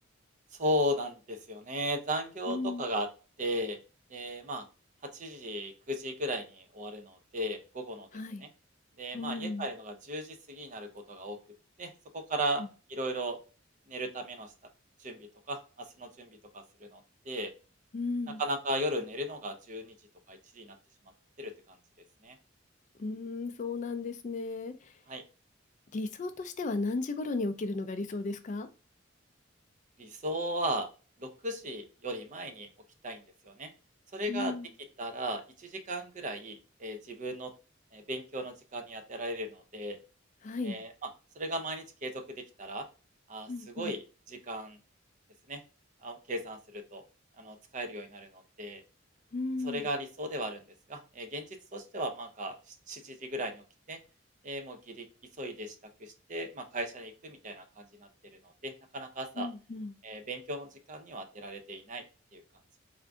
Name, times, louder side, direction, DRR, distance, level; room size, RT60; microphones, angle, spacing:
voice 1, 0.6-3.1 3.4-3.8 4.1-4.6 5.0-8.1 8.4-8.5 9.0-11.4 11.8-12.6 12.9-13.4 13.9-14.5 15.0-16.3 16.5-17.0 17.3-17.5 18.4-19.9 20.3-20.8 21.4-21.5 22.2-22.4 25.1-25.2 30.0-30.9 31.2-32.7 33.0-33.7 34.1-34.6 35.0-37.5 37.9-40.0 40.6-41.1 41.4-42.9 43.3-44.8 45.5-45.6 46.0-47.0 47.4-48.8 49.6-50.6 50.9-51.5 51.7-53.6 53.9-54.0 54.4-55.1 55.4-55.7 56.0-57.8 58.6-59.5 60.0-62.0 62.3-62.4, right 1 dB, 40° right, 0.5 m, -36 dB
voice 2, 2.5-2.8 8.1-8.4 9.1-9.6 17.9-18.4 23.0-24.7 25.9-28.7 34.3-34.7 40.4-40.8 43.5-43.9 49.3-49.9 59.4-59.9, left 3 dB, 40° left, 0.3 m, -35 dB
3.6 x 2.5 x 3.4 m
head